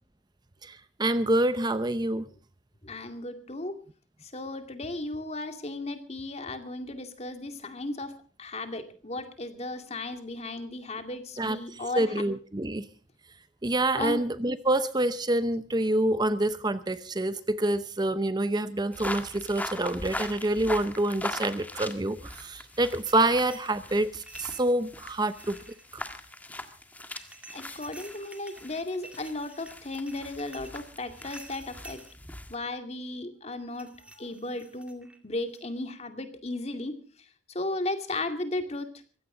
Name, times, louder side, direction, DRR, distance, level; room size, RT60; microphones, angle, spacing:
voice 1, 0.6-2.2 11.4-11.6 12.0-12.8 13.6-25.6 25.9-26.0, right 1 dB, 25° right, 13 dB, 0.7 m, -27 dB
voice 2, 2.8-3.8 4.2-8.1 8.4-12.1 14.0-14.2 27.5-32.0 32.5-37.0 37.5-38.9, left 2 dB, 35° left, 7 dB, 2.3 m, -35 dB
sound 1, 18.9-32.6, left 1 dB, 10° left, 1.7 m, -41 dB
sound 2, 22.7-24.7 25.2-26.0 27.2-32.1 33.7-35.2 35.5-35.8, right 2 dB, 5° right, 2.2 m, -50 dB
23.0 x 16.0 x 3.8 m, 0.40 s
head